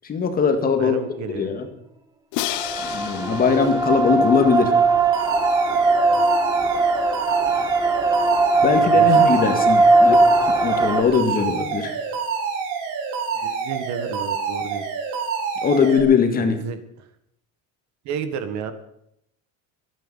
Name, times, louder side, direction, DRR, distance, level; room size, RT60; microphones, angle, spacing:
voice 1, 0.0-1.0 1.4-1.7 2.8-4.7 8.6-10.2 10.5-12.0 15.6-16.6, left 6 dB, 25° left, 6 dB, 1.9 m, -20 dB
voice 2, 0.8-1.5 6.1-6.3 8.5-9.2 13.3-14.8 16.4-17.1 18.0-18.7, right 7 dB, 60° right, 10 dB, 1.7 m, -32 dB
Crash cymbal, 2.3-5.3, left 17 dB, 85° left, 0.8 m, -33 dB
sound 1, 2.4-11.0, right 3 dB, 10° right, 0.9 m, -19 dB
Alarm, 5.1-16.0, right 5 dB, 75° right, 4.3 m, -28 dB
25.0 x 9.4 x 5.6 m, 0.76 s
cardioid pair, 160°, 32 cm